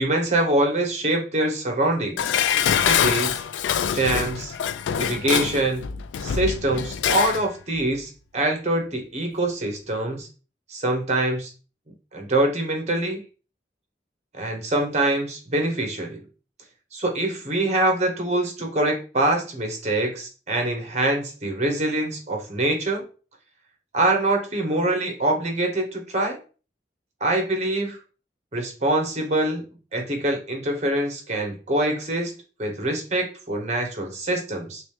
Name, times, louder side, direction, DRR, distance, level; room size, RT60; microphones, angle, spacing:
voice 1, 0.0-2.3 2.8-3.4 3.9-4.5 5.0-5.9 6.2-10.3 10.7-11.5 12.1-13.2 14.3-16.2 16.9-23.0 23.9-26.4 27.2-28.0 28.5-29.7 29.9-32.3 32.6-34.8, right 1 dB, 40° right, 3 dB, 0.9 m, -24 dB
Dishes pots and pans, 2.2-7.5 7.8-7.9, left 8 dB, 90° left, 0.3 m, -24 dB
3.1 x 3.0 x 3.2 m, 0.35 s
head